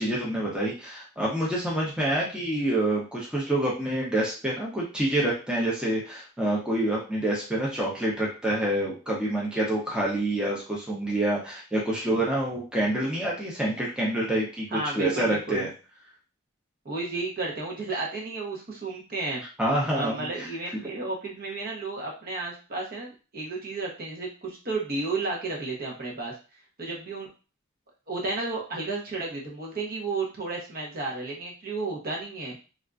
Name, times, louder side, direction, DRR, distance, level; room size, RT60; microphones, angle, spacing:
voice 1, 0.0-15.7 19.6-20.5, right 1 dB, 5° right, -5 dB, 0.7 m, -27 dB
voice 2, 14.7-15.6 16.8-19.4 19.9-26.4 26.8-27.3 28.1-32.6, right 3 dB, 45° right, -2 dB, 0.9 m, -32 dB
3.4 x 2.5 x 2.4 m, 0.34 s
head